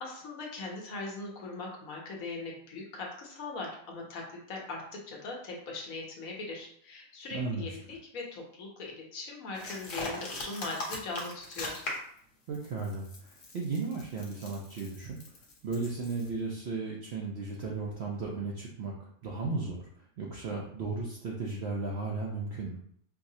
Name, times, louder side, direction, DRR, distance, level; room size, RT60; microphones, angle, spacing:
voice 1, 0.0-11.7, left 3 dB, 70° left, -1 dB, 1.2 m, -40 dB
voice 2, 7.3-7.8 12.5-15.2 15.6-18.9 19.2-22.8, right 3 dB, 65° right, -2 dB, 0.7 m, -35 dB
sound 1, 9.5-12.2 12.5-16.3, left 2 dB, 55° left, 0.9 m, -40 dB
4.6 x 2.0 x 2.7 m, 0.65 s
omnidirectional pair, 1.5 m